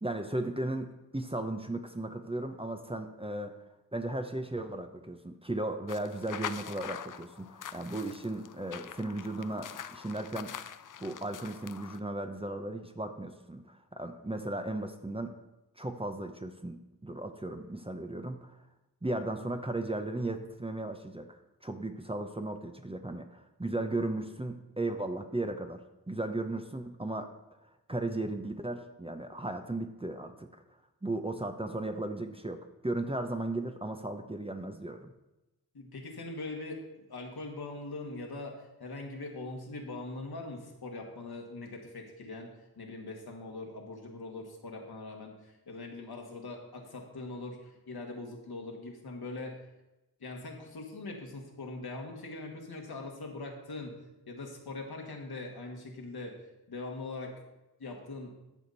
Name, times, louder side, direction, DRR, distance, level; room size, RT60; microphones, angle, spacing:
voice 1, 0.0-3.6 3.9-10.5 11.0-15.4 15.8-18.6 19.0-21.3 21.6-27.3 27.9-30.5 31.0-35.1, right 2 dB, 15° right, 6 dB, 0.9 m, -36 dB
sound 1, 5.9-12.0, left 8 dB, 55° left, 0.5 m, -44 dB
voice 2, 35.7-49.6 50.2-54.0 54.3-56.4 56.7-57.4 57.8-58.4, left 2 dB, 70° left, 1 dB, 1.8 m, -42 dB
13.5 x 5.1 x 4.2 m, 0.98 s
cardioid pair, 50°, 39 cm